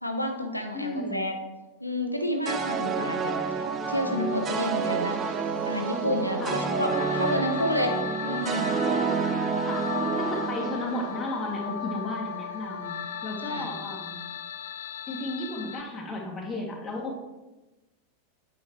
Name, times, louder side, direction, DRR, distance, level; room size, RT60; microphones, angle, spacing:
voice 1, 0.0-1.3 1.8-5.2 5.7-8.0 8.2-8.7 13.5-13.7, equal, 90° left, 4 dB, 0.9 m, -30 dB
voice 2, 0.7-1.2 6.4-6.6 9.1-13.0 13.2-14.2 15.1-17.2, left 1 dB, 15° left, -2 dB, 2.0 m, -34 dB
sound 1, 2.4-11.8, right 5 dB, 25° right, 0.5 m, -29 dB
sound 2, 3.8-15.8, left 7 dB, 55° left, 0.4 m, -37 dB
8.4 x 5.1 x 4.7 m, 1.1 s
figure-of-eight pair, 90°, 0 cm